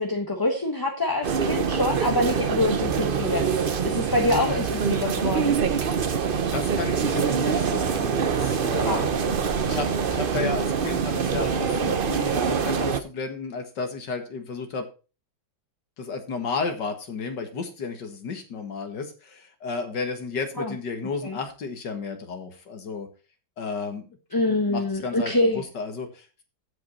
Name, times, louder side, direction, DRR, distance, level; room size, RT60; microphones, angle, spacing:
voice 1, 0.0-3.5 3.8-5.6 8.9-9.3 20.6-20.8 21.2-21.4 24.3-25.6, left 1 dB, 15° left, 2 dB, 1.1 m, -25 dB
sound 1, 1.2-13.0, right 6 dB, 50° right, 0.6 m, -25 dB
voice 2, 4.2-4.7 6.1-6.2 6.5-9.1 9.6-14.9 16.0-23.1 23.6-26.4, left 4 dB, 70° left, 6 dB, 2.3 m, -33 dB
15.0 x 5.4 x 4.1 m, 0.33 s
omnidirectional pair, 2.0 m